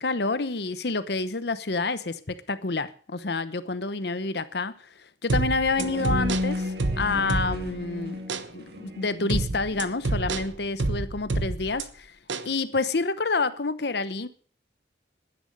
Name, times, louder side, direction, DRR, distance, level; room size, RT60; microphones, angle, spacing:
voice 1, 0.0-8.2 8.5-12.2 12.4-14.3, left 3 dB, 65° left, 0.9 m, -28 dB
sound 1, 5.3-7.8 8.3-8.5 9.3-11.8 12.3-12.5, right 2 dB, 90° right, 1.1 m, -28 dB
sound 2, 5.8-10.6, left 2 dB, 60° right, 2.2 m, -33 dB
12.0 x 10.5 x 6.5 m
head